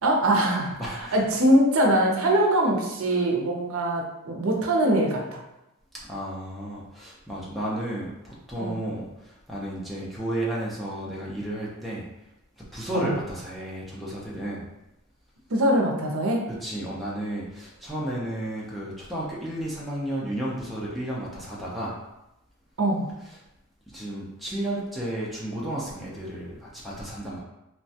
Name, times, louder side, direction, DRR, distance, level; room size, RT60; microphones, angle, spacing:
voice 1, 0.0-5.4 8.6-8.8 12.9-13.2 15.5-16.5 22.8-23.1, right 1 dB, 75° right, 0 dB, 0.6 m, -23 dB
voice 2, 0.8-1.3 6.1-12.0 12.7-14.7 16.6-22.0 23.9-27.4, right 1 dB, ahead, -6 dB, 0.5 m, -32 dB
3.0 x 2.2 x 2.7 m, 0.92 s
head